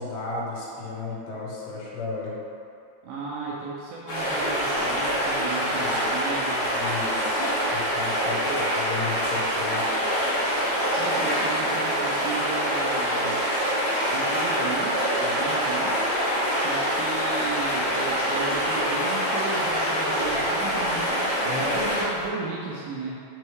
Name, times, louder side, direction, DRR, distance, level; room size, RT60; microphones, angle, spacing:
voice 1, 0.0-2.4 5.8-5.9 6.7-7.5 7.7-10.1 21.5-21.8, left 3 dB, 85° left, -4 dB, 3.0 m, -34 dB
voice 2, 3.0-6.7 8.5-8.7 11.0-13.4 14.1-16.0 16.4-23.2, right 4 dB, 85° right, -5 dB, 2.0 m, -35 dB
sound 1, 4.1-22.2, equal, 60° left, 1.7 m, -25 dB
6.4 x 3.2 x 4.6 m, 2.6 s
omnidirectional pair, 4.9 m